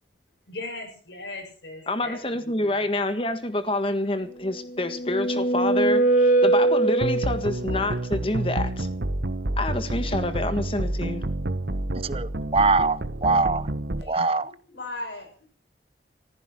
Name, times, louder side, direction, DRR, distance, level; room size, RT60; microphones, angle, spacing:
voice 1, 0.5-2.9 7.7-7.9 14.0-15.3, left 2 dB, 80° left, 7.4 m, -38 dB
voice 2, 1.9-8.9 9.6-11.2, left 2 dB, 30° left, 1.6 m, -27 dB
sound 1, 4.6-7.6, right 2 dB, 45° left, 1.4 m, -22 dB
sound 2, 7.0-14.0, right 1 dB, 70° right, 1.2 m, -29 dB
voice 3, 12.0-13.7 14.1-14.5, right 3 dB, 30° right, 0.7 m, -23 dB
15.0 x 14.5 x 6.2 m
head